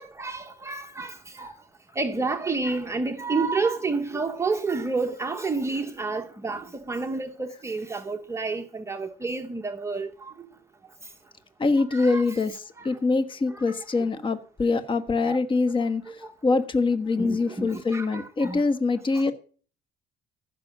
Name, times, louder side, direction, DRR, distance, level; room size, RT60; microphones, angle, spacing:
voice 1, 0.0-1.5 2.0-10.3 11.9-12.4 12.8-12.9 13.5-13.8 15.2-15.4 16.1-16.3 17.2-18.6 19.1-19.3, right 3 dB, 15° right, 1.0 m, -30 dB
voice 2, 11.6-19.3, left 3 dB, 30° left, 1.3 m, -24 dB
15.0 x 6.2 x 8.7 m
cardioid pair, 110°, 17 cm